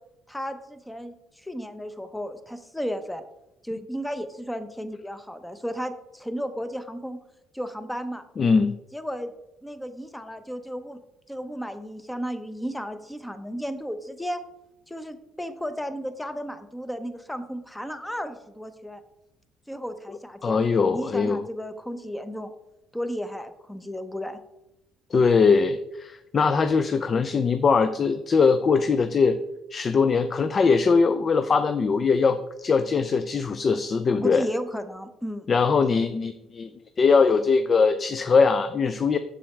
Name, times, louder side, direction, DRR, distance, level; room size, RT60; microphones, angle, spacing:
voice 1, 0.3-3.2 3.6-7.2 7.5-8.2 8.9-9.3 9.6-11.0 11.3-14.4 14.9-19.0 19.7-20.6 20.9-22.5 22.9-24.4 34.2-35.5, equal, 5° left, 10 dB, 0.8 m, -34 dB
voice 2, 8.4-8.7 20.4-21.4 25.1-29.4 29.7-34.4 35.5-36.7 37.0-39.2, left 5 dB, 40° left, 10 dB, 0.4 m, -21 dB
7.1 x 6.9 x 3.2 m, 0.87 s
supercardioid pair, 85°, 0 cm